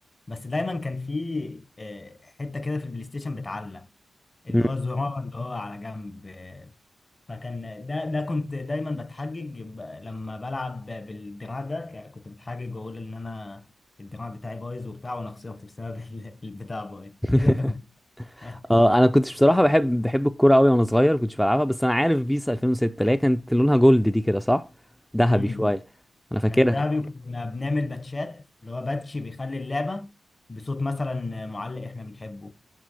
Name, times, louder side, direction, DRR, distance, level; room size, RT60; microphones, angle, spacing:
voice 1, 0.3-3.9 4.4-6.7 7.3-13.7 14.0-17.8 18.4-18.7 25.3-25.7 26.5-30.1 30.5-32.5, left 2 dB, 35° left, 0.8 m, -32 dB
voice 2, 18.4-24.7 25.1-25.8 26.3-26.8, equal, 5° left, 0.4 m, -20 dB
6.3 x 5.0 x 4.1 m
cardioid pair, 60°, 0 cm